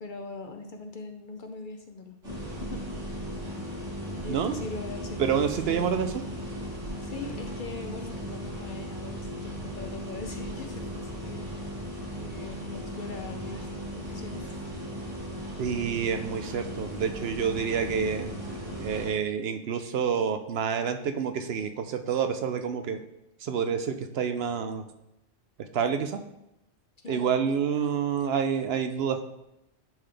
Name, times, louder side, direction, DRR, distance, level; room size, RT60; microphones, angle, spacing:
voice 1, 0.0-2.2 2.6-2.8 4.0-5.9 7.0-11.8 12.2-14.5 27.0-27.3, left 3 dB, 50° left, 5 dB, 0.7 m, -41 dB
sound 1, 2.2-19.1, equal, 90° right, 2.6 m, -37 dB
voice 2, 5.2-6.1 15.6-23.0 23.4-24.8 25.7-26.2 27.1-29.2, right 7 dB, 65° right, 8 dB, 0.7 m, -28 dB
10.5 x 3.8 x 3.3 m, 0.86 s
omnidirectional pair, 1.2 m